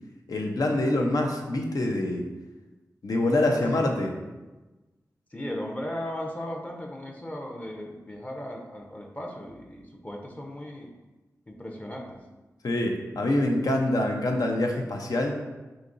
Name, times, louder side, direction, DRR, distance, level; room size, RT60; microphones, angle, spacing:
voice 1, 0.3-2.2 3.0-4.1 12.6-15.4, left 1 dB, 70° left, 2 dB, 0.6 m, -25 dB
voice 2, 3.3-3.9 5.3-10.9 11.5-12.2, left 1 dB, 25° left, 1 dB, 0.6 m, -37 dB
5.1 x 2.8 x 2.5 m, 1.2 s
cardioid pair, 40°, 6 cm